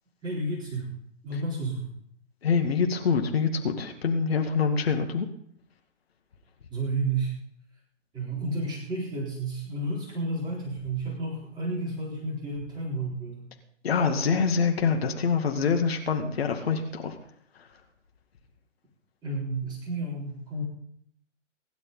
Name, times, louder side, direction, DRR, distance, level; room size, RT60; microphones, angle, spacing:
voice 1, 0.2-0.9 1.2-1.9 6.7-7.3 8.1-13.5 19.2-20.6, right 2 dB, 10° right, -5 dB, 3.9 m, -31 dB
voice 2, 2.4-5.3 13.8-17.2, left 5 dB, 55° left, 4 dB, 2.1 m, -25 dB
23.5 x 11.5 x 4.0 m, 0.68 s
figure-of-eight pair, 130°, 37 cm